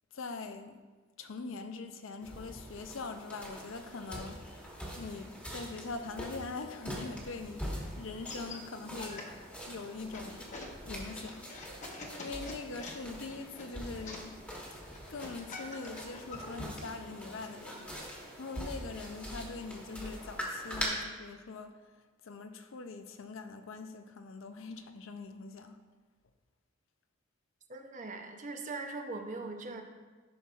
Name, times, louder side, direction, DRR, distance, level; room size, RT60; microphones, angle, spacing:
voice 1, 0.1-0.8 1.2-9.3 9.7-10.5 10.9-14.5 15.1-25.8, left 4 dB, 70° left, 0.5 m, -43 dB
sound 1, 2.2-20.8, equal, 5° left, 1.3 m, -44 dB
sound 2, 8.0-16.6, left 2 dB, 35° left, 0.9 m, -47 dB
voice 2, 27.7-29.8, right 3 dB, 35° right, 0.6 m, -40 dB
11.0 x 5.9 x 2.4 m
head